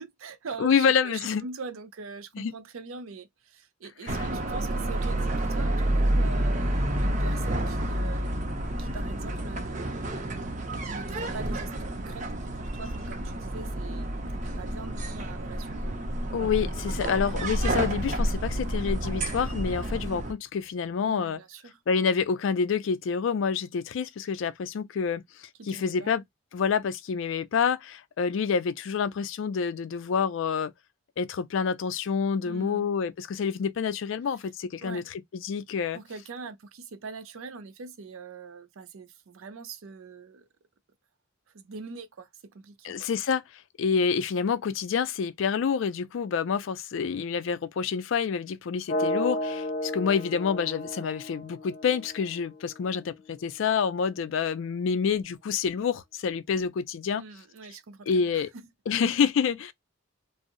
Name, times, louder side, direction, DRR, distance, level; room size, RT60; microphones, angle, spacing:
voice 1, 0.0-8.5 8.8-10.1 10.8-16.0 21.0-21.8 25.6-26.1 32.4-32.9 34.3-34.4 34.8-35.1 35.9-40.5 41.5-43.1 57.2-58.5, right 4 dB, 85° right, 0.5 m, -43 dB
voice 2, 0.6-1.4 2.4-2.5 4.1-4.2 16.3-21.4 21.9-26.2 26.5-30.7 31.2-35.0 35.3-36.0 42.8-43.4 43.8-57.2 58.1-58.5 58.9-59.7, left 6 dB, 70° left, 0.3 m, -28 dB
sound 1, 4.1-20.3, right 1 dB, 35° right, 0.5 m, -29 dB
sound 2, 48.9-52.8, left 1 dB, 55° left, 0.7 m, -33 dB
2.6 x 2.0 x 2.4 m
head